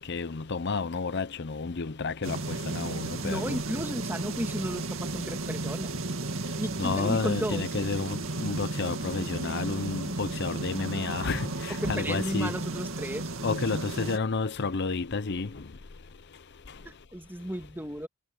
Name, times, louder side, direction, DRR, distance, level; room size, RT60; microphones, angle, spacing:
voice 1, 0.1-3.6 6.8-12.5 13.4-15.5, left 4 dB, 55° left, 0.7 m, -31 dB
sound 1, 2.2-14.2, right 2 dB, 65° right, 2.3 m, -34 dB
voice 2, 3.2-6.0 6.6-7.7 11.7-13.3 16.9-18.1, right 1 dB, 10° right, 1.9 m, -34 dB
head